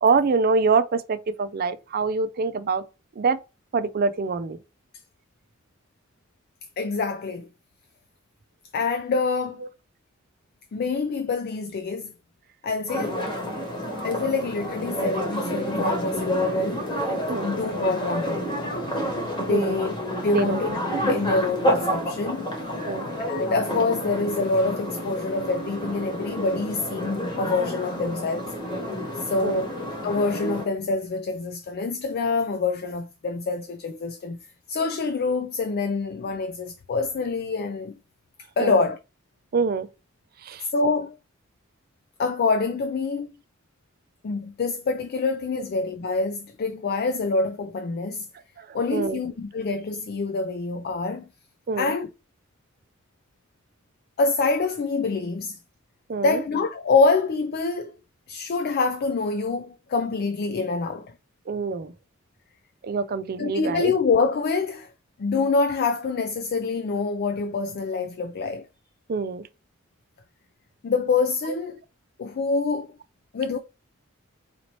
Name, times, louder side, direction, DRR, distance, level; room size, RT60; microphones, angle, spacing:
voice 1, 0.0-2.8 3.2-3.4 3.7-4.6 17.3-17.5 19.5-19.8 20.3-20.6 22.8-23.1 29.4-29.7 38.6-38.8 39.5-39.9 40.4-40.7 48.6-49.2 51.7-51.9 56.1-56.4 61.5-61.9 62.8-63.9 69.1-69.5 71.4-71.6, right 4 dB, 45° right, 0.4 m, -25 dB
voice 2, 6.8-7.5 8.7-9.6 10.7-12.1 12.6-13.2 14.0-16.9 17.4-18.9 19.4-19.9 20.2-22.5 23.3-28.5 29.2-29.7 30.0-34.4 34.7-38.0 38.6-39.0 40.6-41.1 42.2-43.3 44.2-48.3 48.7-51.3 51.8-52.1 54.2-55.6 56.2-58.0 58.3-61.1 63.4-64.9 65.2-68.7 70.8-71.8 72.2-72.9 73.3-73.6, left 4 dB, 50° left, 0.4 m, -26 dB
sound 1, 12.9-30.7, equal, 20° left, 1.2 m, -29 dB
4.1 x 2.8 x 3.0 m
head